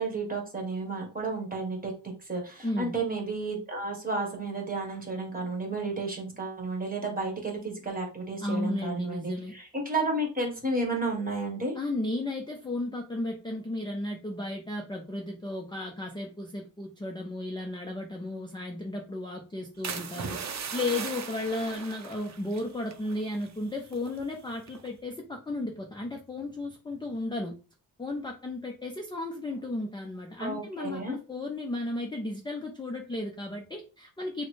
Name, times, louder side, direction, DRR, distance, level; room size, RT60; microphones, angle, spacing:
voice 1, 0.0-1.9 2.3-11.7 30.4-31.2, right 2 dB, 20° right, 1 dB, 1.2 m, -32 dB
voice 2, 2.6-2.9 8.4-9.5 11.8-27.6 28.0-34.4, left 2 dB, 10° left, 2 dB, 0.4 m, -34 dB
sound 1, 19.8-23.6 23.8-24.2 24.7-25.0, right 6 dB, 40° right, 0.6 m, -38 dB
6.3 x 2.1 x 3.1 m, 0.34 s
wide cardioid pair, 160°, 41 cm